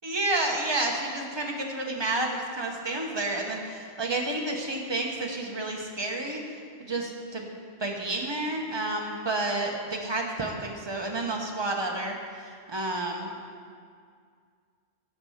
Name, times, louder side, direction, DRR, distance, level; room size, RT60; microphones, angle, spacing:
voice 1, 0.0-6.4 6.8-7.5 7.8-13.4, right 2 dB, 25° right, 1 dB, 0.9 m, -30 dB
7.5 x 6.7 x 5.6 m, 2.1 s
omnidirectional pair, 1.1 m